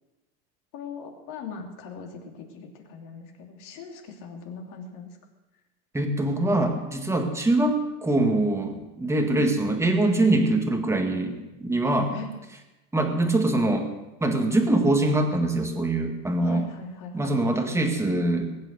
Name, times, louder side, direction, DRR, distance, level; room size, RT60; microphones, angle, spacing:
voice 1, 0.7-5.1 9.3-9.5 12.1-12.3 16.4-17.4, left 6 dB, 45° left, 2 dB, 2.9 m, -39 dB
voice 2, 5.9-12.1 12.9-13.9 14.2-16.7 17.1-18.5, right 2 dB, 5° right, 4 dB, 1.8 m, -23 dB
21.0 x 9.1 x 6.7 m, 1.0 s
supercardioid pair, 140°, 42 cm